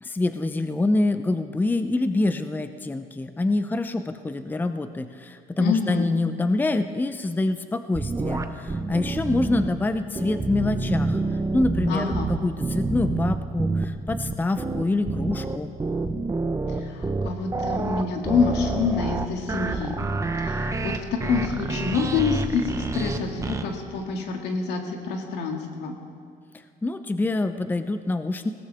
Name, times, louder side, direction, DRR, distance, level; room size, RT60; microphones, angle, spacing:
voice 1, 0.0-11.2 11.5-15.7 26.8-28.5, left 2 dB, 10° left, 10 dB, 0.6 m, -26 dB
voice 2, 5.6-6.1 11.9-12.3 16.8-20.0 20.4-25.9, left 5 dB, 85° left, 2 dB, 2.1 m, -27 dB
sound 1, 7.9-9.7 10.1-23.6, right 3 dB, 20° right, 0.9 m, -28 dB
20.0 x 17.5 x 3.5 m, 2.2 s
cardioid pair, 110°, 17 cm